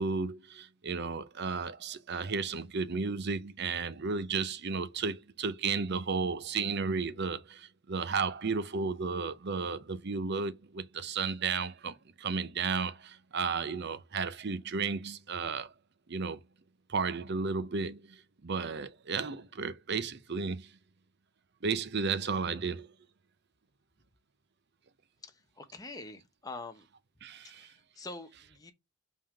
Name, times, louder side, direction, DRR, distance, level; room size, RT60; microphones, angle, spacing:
voice 1, 0.0-15.7 16.1-16.4 16.9-18.2 18.4-20.7 21.6-22.9 27.2-27.7, right 4 dB, 50° right, 0.6 m, -33 dB
voice 2, 25.2-26.9 27.5-28.7, left 3 dB, 15° left, 0.9 m, -45 dB
5.6 x 3.7 x 5.0 m
head